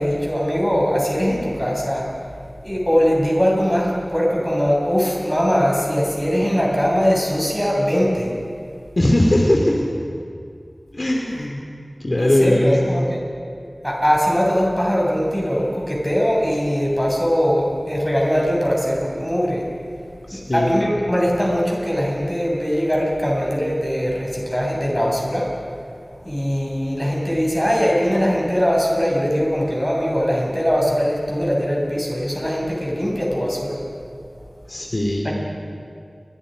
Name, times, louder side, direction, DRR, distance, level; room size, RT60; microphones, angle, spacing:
voice 1, 0.0-2.1 2.6-8.3 12.2-13.2 13.8-19.7 20.3-25.5 26.2-33.8 35.2-35.3, equal, 10° left, -3 dB, 7.7 m, -21 dB
voice 2, 9.0-9.8 10.9-11.6 12.0-13.0 20.3-20.7 34.7-35.3, left 1 dB, 50° left, 0 dB, 2.9 m, -19 dB
29.5 x 24.5 x 5.3 m, 2.4 s
wide cardioid pair, 50°, 0 cm